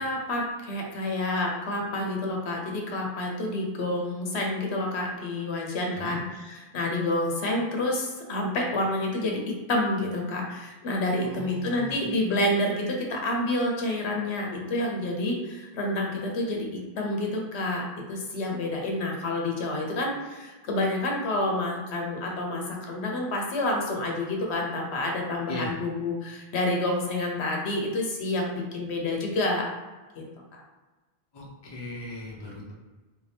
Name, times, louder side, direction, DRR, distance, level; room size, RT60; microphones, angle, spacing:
voice 1, 0.0-29.7 30.2-30.3 30.5-30.6, left 1 dB, 85° left, 0 dB, 1.0 m, -29 dB
voice 2, 11.2-12.0 25.5-25.8 31.3-32.7, left 2 dB, 25° left, -4 dB, 0.7 m, -38 dB
3.3 x 2.7 x 3.4 m, 1.2 s
omnidirectional pair, 1.1 m